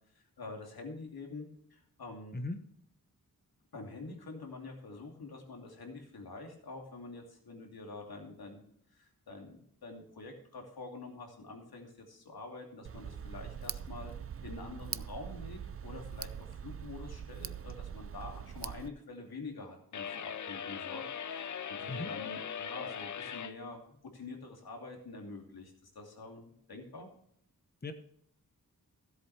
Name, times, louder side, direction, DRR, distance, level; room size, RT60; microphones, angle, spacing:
voice 1, 0.1-2.3 3.7-8.6 8.9-14.1 14.4-27.1, left 3 dB, 90° left, 1 dB, 2.8 m, -46 dB
voice 2, 2.3-2.6 21.9-22.1 27.8-27.9, left 2 dB, 25° left, 8 dB, 1.1 m, -37 dB
Tick, 12.8-18.9, right 8 dB, 40° right, 0.4 m, -42 dB
sound 1, 19.9-23.6, left 8 dB, 55° left, 0.6 m, -40 dB
16.0 x 8.0 x 3.4 m, 0.69 s
wide cardioid pair, 90°, 36 cm